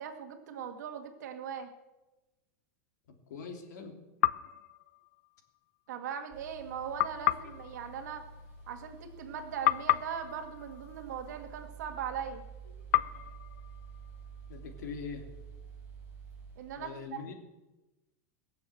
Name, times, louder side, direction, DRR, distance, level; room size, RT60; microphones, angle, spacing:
voice 1, 0.0-1.7 5.9-8.3 8.7-12.5 16.6-17.3, right 8 dB, 75° right, 6 dB, 1.9 m, -40 dB
voice 2, 3.1-3.9 14.5-15.2 16.8-17.3, left 5 dB, 85° left, 4 dB, 3.0 m, -42 dB
sound 1, 4.2-5.6 7.0-9.3 9.6-11.9 12.9-14.8, left 15 dB, 60° left, 0.5 m, -33 dB
sound 2, 6.3-16.8, right 5 dB, 20° right, 5.4 m, -49 dB
21.0 x 7.2 x 7.8 m, 1.1 s
supercardioid pair, 165°, 9 cm